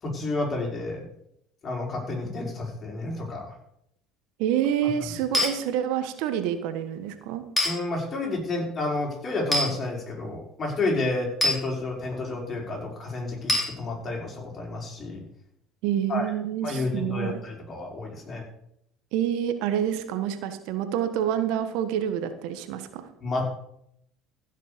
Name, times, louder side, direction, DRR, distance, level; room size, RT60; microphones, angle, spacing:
voice 1, 0.0-1.1 1.6-3.5 7.6-15.2 16.1-16.3 16.6-18.4 23.2-23.6, left 2 dB, 35° left, -1 dB, 5.3 m, -30 dB
voice 2, 4.4-7.4 15.8-17.4 19.1-23.1, right 9 dB, 70° right, 9 dB, 1.4 m, -27 dB
sound 1, 5.3-5.5 7.6-7.7 9.5-9.7 11.4-11.6 13.5-13.7, left 1 dB, 15° left, 4.2 m, -23 dB
15.5 x 6.5 x 6.8 m, 0.75 s
hypercardioid pair, 70°, 0 cm